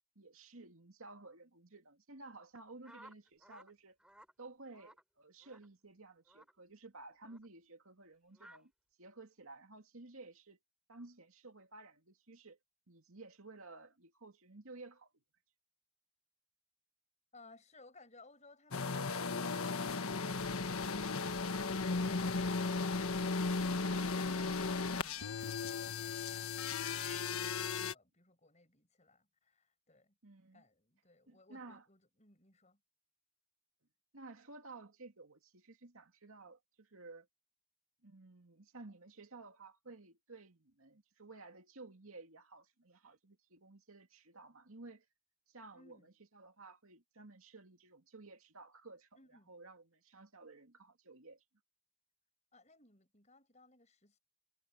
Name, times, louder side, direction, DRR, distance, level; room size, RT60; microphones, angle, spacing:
voice 1, 0.2-4.0 4.4-8.7 9.0-10.6 10.9-12.6 12.9-15.1 30.2-30.6 31.3-31.8 34.1-37.3 38.0-45.1 45.5-51.4, right 3 dB, 70° right, 2.4 m, -54 dB
sound 1, 2.8-3.7 4.0-4.3 4.7-5.0 5.4-5.7 6.3-6.5 7.2-7.5 8.3-8.6, right 1 dB, 5° right, 6.3 m, -58 dB
voice 2, 17.3-23.2 23.9-30.2 30.5-32.8 45.7-46.1 49.2-49.5 52.5-54.2, left 3 dB, 30° left, 6.9 m, -63 dB
sound 2, 18.7-27.9, left 4 dB, 75° left, 1.4 m, -36 dB
head